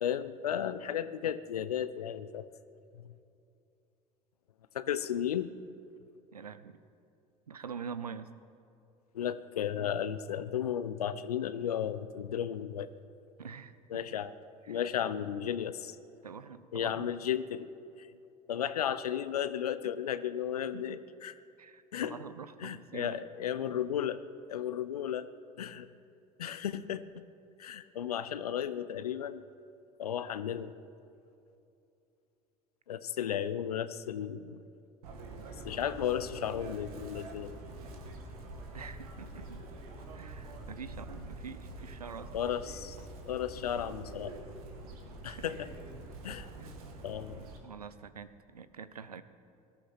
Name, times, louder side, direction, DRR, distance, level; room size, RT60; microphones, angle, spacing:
voice 1, 0.0-2.5 2.9-3.1 4.7-5.5 9.1-12.9 13.9-14.3 14.7-16.0 16.7-17.7 18.0-18.1 18.5-21.3 21.9-22.2 22.6-24.2 24.5-25.3 25.6-25.9 26.4-27.2 27.6-29.4 30.0-30.7 32.9-34.6 35.6-37.6 42.3-43.0 43.3-44.3 45.2-45.7 46.2-46.5 47.0-47.4, left 9 dB, 80° left, 15 dB, 0.7 m, -34 dB
voice 2, 6.3-6.8 7.5-8.3 13.4-14.0 14.6-14.8 16.2-17.1 19.8-19.9 20.7-21.0 21.6-23.2 38.7-39.6 40.1-42.3 45.3-45.5 46.5-46.7 47.6-49.2, right 6 dB, 90° right, 13 dB, 0.7 m, -45 dB
Chirp tweet, 35.0-47.6, right 2 dB, 70° right, 2.1 m, -46 dB
19.0 x 13.0 x 5.9 m, 2.7 s
figure-of-eight pair, 70°, 19 cm